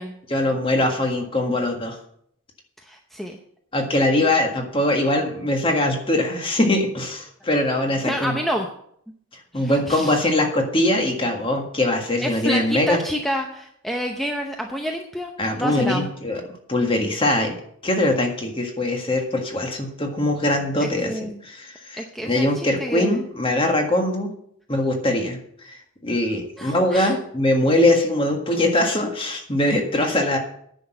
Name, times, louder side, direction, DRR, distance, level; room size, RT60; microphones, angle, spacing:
voice 1, 0.3-2.0 3.7-8.4 9.5-13.0 15.4-16.4 16.7-17.5 17.8-24.3 24.7-25.4 25.6-30.4, left 1 dB, 25° left, 3 dB, 1.7 m, -22 dB
voice 2, 2.8-3.4 8.0-8.7 9.5-10.2 12.2-16.1 20.8-21.4 22.0-23.2 26.6-27.1, equal, ahead, 2 dB, 0.7 m, -28 dB
10.0 x 6.3 x 7.8 m, 0.68 s
head